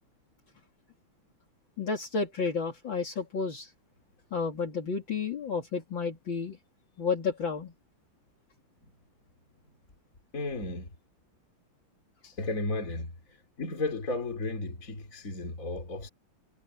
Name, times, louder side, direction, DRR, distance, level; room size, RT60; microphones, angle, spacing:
voice 1, 1.8-3.7 4.3-6.6 7.0-7.7, left 5 dB, 60° left, 3.3 m, -31 dB
voice 2, 10.3-10.9 12.2-13.1 13.6-16.1, left 2 dB, 40° left, 3.4 m, -34 dB
omnidirectional pair, 2.4 m